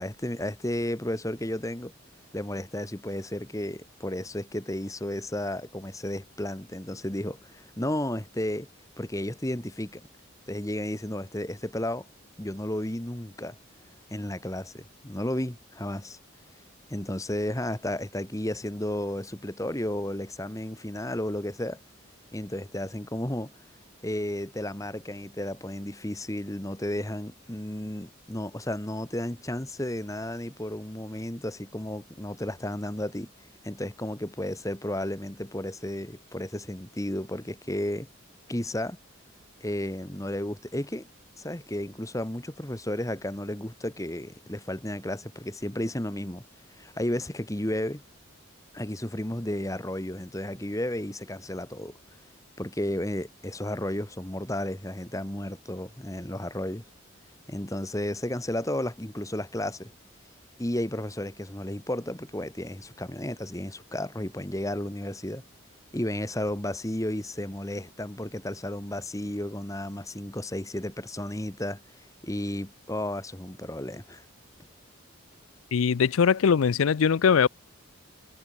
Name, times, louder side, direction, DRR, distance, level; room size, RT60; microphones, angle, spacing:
voice 1, 0.0-1.9 2.3-8.7 9.0-10.0 10.5-12.1 12.4-13.6 14.1-16.2 16.9-21.8 22.3-23.5 24.0-33.3 33.6-38.1 38.5-39.0 39.6-41.0 41.4-46.4 46.7-48.0 48.7-51.9 52.6-56.8 57.5-59.9 60.6-65.4 65.9-71.8 72.2-74.2, left 1 dB, 15° left, 1.5 m, -33 dB
voice 2, 75.7-77.5, left 6 dB, 80° left, 0.5 m, -21 dB
head